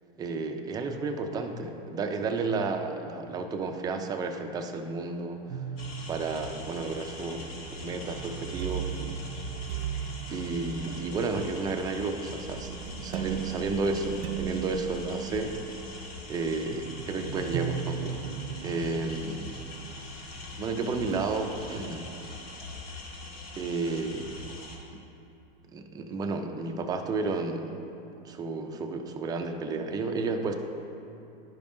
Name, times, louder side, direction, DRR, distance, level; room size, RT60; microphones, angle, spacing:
voice 1, 0.2-5.6 6.1-9.2 10.3-15.9 16.3-19.5 20.6-22.1 23.6-24.5 25.7-27.8 28.2-30.5, right 3 dB, 15° right, 5 dB, 0.3 m, -32 dB
sound 1, 5.5-20.7 21.1-21.3, right 8 dB, 80° right, 0.4 m, -37 dB
sound 2, 5.8-24.8, left 2 dB, 80° left, 1.4 m, -42 dB
11.5 x 5.1 x 2.6 m, 2.9 s
supercardioid pair, 130°, 29 cm